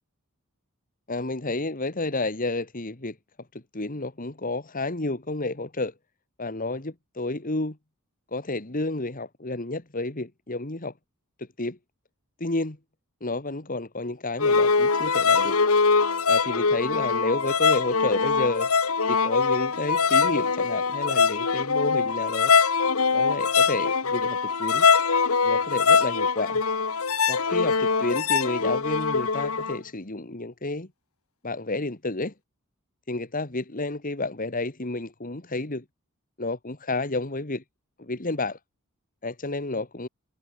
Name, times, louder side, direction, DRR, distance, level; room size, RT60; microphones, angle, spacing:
voice 1, 1.1-3.2 3.5-5.9 6.4-7.8 8.3-10.9 11.6-11.8 12.4-12.8 13.2-15.6 16.3-18.7 19.1-22.5 23.1-24.9 25.4-26.6 27.3-30.9 31.4-32.3 33.1-35.8 36.4-37.6 38.0-38.6 39.2-40.1, left 2 dB, 40° left, 2.0 m, -30 dB
sound 1, 14.4-29.8, left 5 dB, 85° left, 1.6 m, -23 dB
head